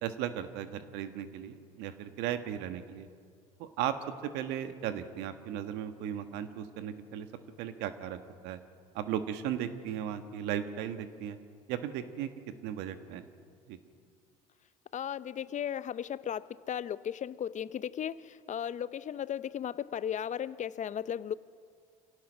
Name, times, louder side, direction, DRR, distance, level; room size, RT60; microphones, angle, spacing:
voice 1, 0.0-3.1 3.6-3.9 4.2-7.3 7.6-8.2 8.4-8.6 8.9-11.4 11.7-12.3 12.6-13.2 13.7-13.8, right 10 dB, 70° right, 9 dB, 1.5 m, -36 dB
voice 2, 14.9-21.3, left 9 dB, 45° left, 17 dB, 0.8 m, -36 dB
26.0 x 17.0 x 6.3 m, 2.1 s
hypercardioid pair, 60°, 18 cm